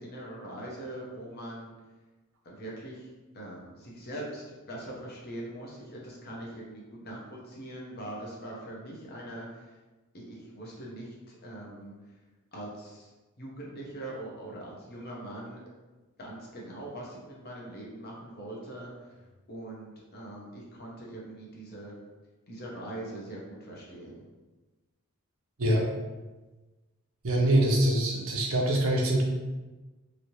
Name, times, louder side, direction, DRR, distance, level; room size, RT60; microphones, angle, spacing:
voice 1, 0.0-1.7 2.4-9.8 10.1-11.9 12.5-13.1 13.4-15.6 16.2-18.9 19.5-21.9 22.5-24.2, right 1 dB, 45° left, -3 dB, 0.8 m, -42 dB
voice 2, 27.2-29.2, right 1 dB, 65° right, -1 dB, 0.7 m, -24 dB
3.2 x 2.7 x 2.9 m, 1.2 s
head